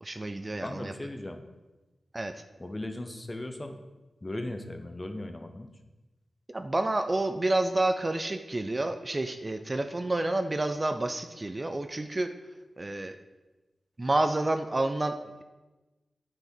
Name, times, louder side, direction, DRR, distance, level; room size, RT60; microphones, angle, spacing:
voice 1, 0.0-0.9 2.1-2.3 6.5-12.3 12.8-13.2 14.0-15.4, right 2 dB, 30° right, 7 dB, 0.5 m, -29 dB
voice 2, 0.6-1.4 2.6-3.8 4.2-5.7, left 1 dB, 25° left, 6 dB, 0.8 m, -37 dB
9.5 x 4.9 x 4.4 m, 1.1 s
wide cardioid pair, 75°, 0 cm